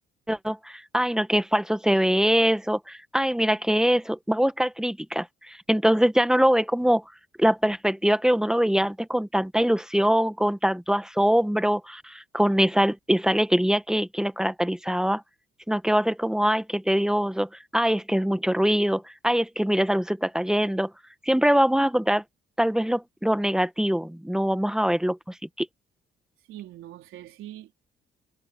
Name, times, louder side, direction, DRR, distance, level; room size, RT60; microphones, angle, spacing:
voice 1, 0.3-7.0 7.4-15.2 15.7-20.9 21.2-22.2 22.6-25.2 25.6-25.7, equal, 5° right, 1.4 m, -23 dB
voice 2, 26.5-27.9, right 13 dB, 85° right, 4.1 m, -43 dB
cardioid pair, 90°, 20 cm